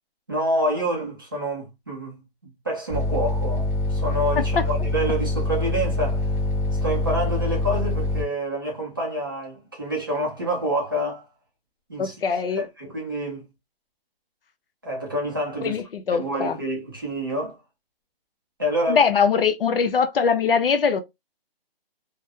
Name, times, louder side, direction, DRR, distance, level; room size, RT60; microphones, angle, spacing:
voice 1, 0.3-6.3 6.8-11.3 11.9-12.1 12.6-13.4 14.8-15.8 16.1-17.6 18.6-19.0, right 1 dB, 20° right, 0.6 m, -27 dB
sound 1, 2.9-8.2, left 2 dB, 15° left, 0.6 m, -25 dB
voice 2, 12.0-12.6 15.6-16.6 18.9-21.0, left 6 dB, 65° left, 0.6 m, -22 dB
2.3 x 2.0 x 2.8 m
hypercardioid pair, 175°, 30 cm